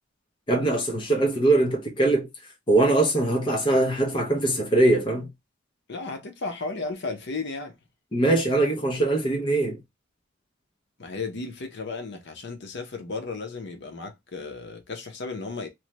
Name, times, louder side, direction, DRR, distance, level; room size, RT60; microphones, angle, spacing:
voice 1, 0.5-2.3 2.7-5.3 8.1-9.8, right 2 dB, 25° left, 0.6 m, -22 dB
voice 2, 5.9-7.8 11.0-15.7, left 3 dB, 60° left, 0.8 m, -34 dB
3.1 x 2.2 x 2.9 m
head